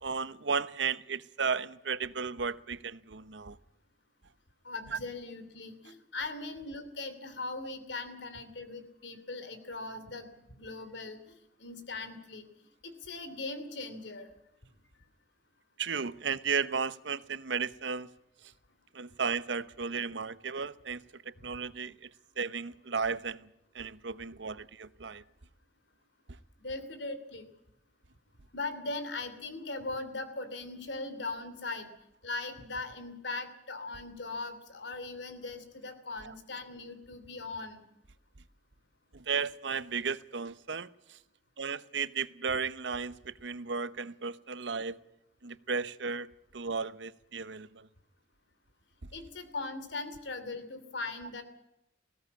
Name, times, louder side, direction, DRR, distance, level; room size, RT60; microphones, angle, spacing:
voice 1, 0.0-3.6 4.9-5.0 15.8-18.1 18.9-22.1 22.4-23.5 23.7-25.2 39.1-41.2 41.6-45.0 45.4-47.9, right 5 dB, 85° right, 0.9 m, -34 dB
voice 2, 4.6-11.3 11.6-12.5 12.8-14.3 26.6-27.5 28.5-31.9 32.2-37.9 49.1-51.4, left 3 dB, 85° left, 2.9 m, -40 dB
19.5 x 16.5 x 8.4 m
head